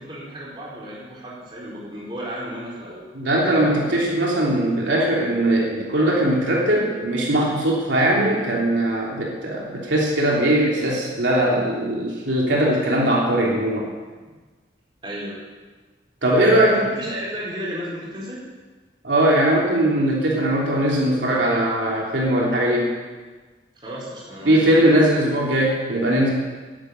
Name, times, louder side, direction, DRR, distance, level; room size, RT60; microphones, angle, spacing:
voice 1, 0.0-3.0 15.0-15.4 16.3-18.4 23.8-24.6, right 1 dB, 25° right, -6 dB, 4.5 m, -33 dB
voice 2, 3.1-13.9 16.2-16.8 19.0-22.9 24.5-26.3, right 1 dB, 80° right, -4 dB, 3.3 m, -20 dB
11.5 x 9.7 x 9.5 m, 1.3 s
head